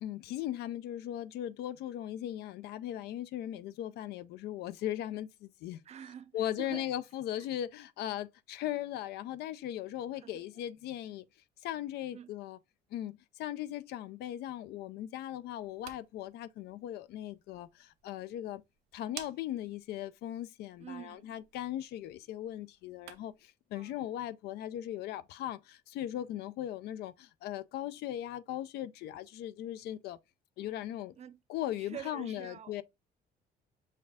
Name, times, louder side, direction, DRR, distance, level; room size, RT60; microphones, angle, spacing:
voice 1, 0.0-5.8 6.3-11.2 11.6-12.6 12.9-18.6 18.9-30.2 30.6-31.1 31.5-32.8, left 12 dB, 75° left, 0.4 m, -38 dB
voice 2, 5.8-6.9 7.4-7.5 10.1-10.6 12.1-12.4 20.8-21.4 23.7-24.1 30.6-30.9 31.2-31.4 31.8-32.8, right 9 dB, 40° right, 0.5 m, -48 dB
sound 1, 15.5-23.5, right 11 dB, 85° right, 0.7 m, -54 dB
6.5 x 2.4 x 3.3 m
cardioid pair, 110°, 17 cm